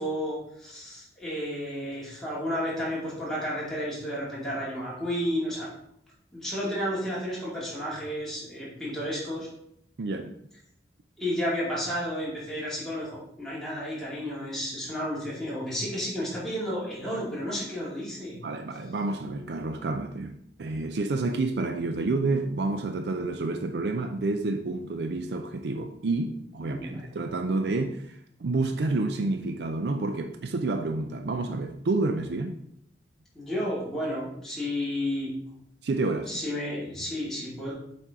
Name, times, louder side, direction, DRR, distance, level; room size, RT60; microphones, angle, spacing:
voice 1, 0.0-5.7 6.3-9.5 11.2-18.4 26.6-27.0 33.3-35.3 36.3-37.7, equal, 5° left, -8 dB, 2.4 m, -32 dB
voice 2, 10.0-10.3 18.4-32.5 35.8-36.3, right 3 dB, 75° right, 7 dB, 0.5 m, -29 dB
8.0 x 4.4 x 3.7 m, 0.74 s
head